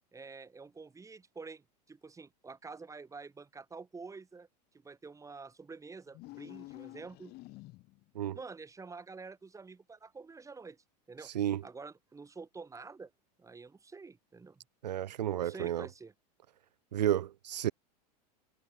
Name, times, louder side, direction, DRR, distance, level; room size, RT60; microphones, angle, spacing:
voice 1, 0.1-4.5 4.8-7.3 8.3-11.3 11.6-13.1 13.4-14.6 15.4-16.1, right 4 dB, 15° right, 4.0 m, -48 dB
sound 1, 6.1-8.1, left 20 dB, 50° left, 2.8 m, -49 dB
voice 2, 14.8-15.9 16.9-17.7, right 11 dB, 85° right, 1.7 m, -31 dB
hypercardioid pair, 105°, 21 cm